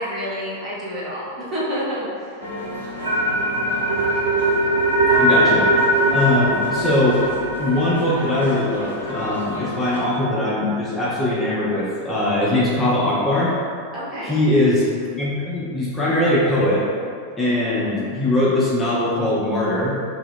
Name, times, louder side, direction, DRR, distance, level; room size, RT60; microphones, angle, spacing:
voice 1, 0.0-2.4 13.9-14.4, equal, 30° right, -8 dB, 0.9 m, -28 dB
sound 1, 2.4-10.0, left 1 dB, 85° left, 0.6 m, -32 dB
sound 2, 3.0-9.2, right 1 dB, 75° right, 0.4 m, -21 dB
voice 2, 5.2-5.7 6.1-7.2 7.6-13.5 14.2-14.8 15.2-16.8 17.4-19.9, left 1 dB, 15° left, -8 dB, 0.6 m, -21 dB
2.7 x 2.3 x 3.4 m, 2.2 s
figure-of-eight pair, 90°, 0 cm